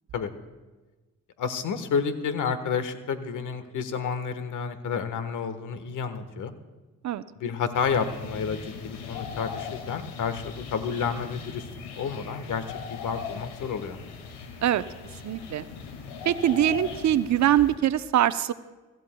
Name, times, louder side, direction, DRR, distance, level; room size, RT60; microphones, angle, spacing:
voice 1, 1.4-6.5 7.4-11.7 12.0-14.0, left 6 dB, 60° left, 10 dB, 1.4 m, -30 dB
sound 1, 7.7-17.7, left 6 dB, 85° left, 2.1 m, -39 dB
voice 2, 15.2-15.7 16.3-18.5, right 11 dB, 55° right, 13 dB, 0.7 m, -23 dB
25.0 x 13.5 x 2.3 m, 1.2 s
hypercardioid pair, 50°, 34 cm